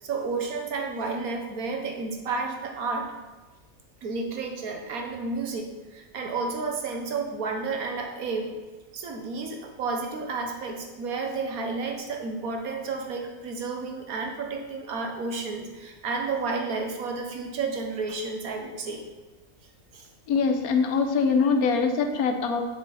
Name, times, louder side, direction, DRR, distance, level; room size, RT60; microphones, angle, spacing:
voice 1, 0.0-3.1 4.0-8.5 8.9-19.0 19.9-20.1, right 4 dB, 80° right, 3 dB, 1.5 m, -31 dB
voice 2, 20.3-22.6, left 5 dB, 80° left, 6 dB, 1.3 m, -23 dB
7.2 x 6.4 x 4.0 m, 1.2 s
omnidirectional pair, 1.5 m